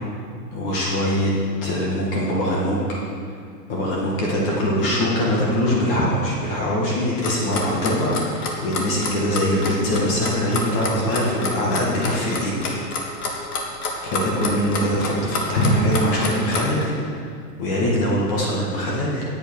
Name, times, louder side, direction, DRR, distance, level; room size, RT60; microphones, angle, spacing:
voice 1, 0.5-1.3 1.6-3.0 3.7-13.2 14.0-17.3 17.6-19.2, equal, 35° left, -4 dB, 2.0 m, -22 dB
Clock, 7.2-16.8, left 3 dB, 65° left, 2.0 m, -27 dB
10.0 x 8.2 x 4.8 m, 2.3 s
hypercardioid pair, 155°, 49 cm